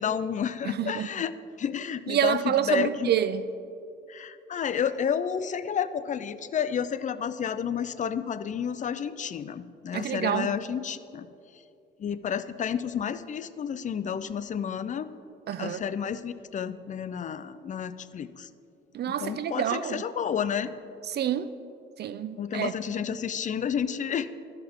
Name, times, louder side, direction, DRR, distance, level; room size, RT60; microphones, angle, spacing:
voice 1, 0.0-1.3 1.6-3.1 4.1-11.3 12.0-15.1 15.6-18.5 19.1-20.7 22.4-24.3, left 8 dB, 40° left, 13 dB, 0.4 m, -31 dB
voice 2, 0.6-1.1 2.1-3.4 9.9-10.5 15.5-15.8 18.9-20.0 21.1-21.5 22.0-22.7, right 10 dB, 55° right, 13 dB, 0.4 m, -27 dB
13.5 x 5.8 x 3.6 m, 2.6 s
cardioid pair, 90°, 20 cm